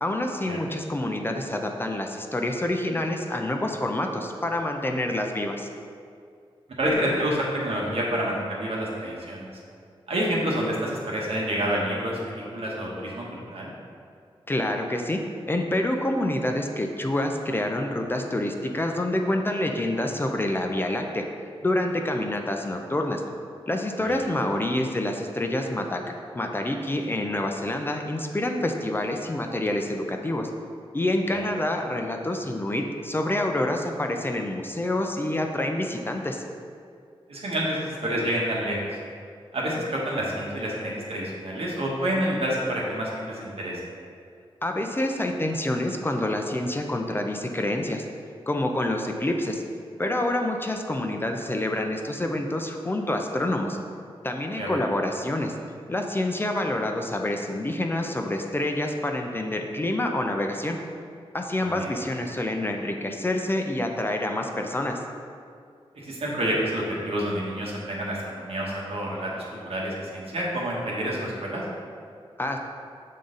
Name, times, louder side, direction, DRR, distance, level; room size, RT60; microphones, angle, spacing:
voice 1, 0.0-5.7 14.5-15.2 15.5-21.2 21.6-23.2 23.7-30.5 30.9-36.4 44.6-48.0 48.5-49.6 50.0-53.8 54.2-55.5 55.9-60.8 61.3-65.0 72.4-72.6, left 1 dB, 20° left, 3 dB, 0.4 m, -27 dB
voice 2, 6.8-9.5 10.1-13.2 13.5-13.7 24.1-24.2 31.3-31.4 37.3-38.8 39.5-43.8 54.6-54.8 61.6-61.9 66.0-71.6, equal, 75° right, -4 dB, 1.2 m, -28 dB
7.0 x 3.7 x 3.9 m, 2.3 s
wide cardioid pair, 115°, 10 cm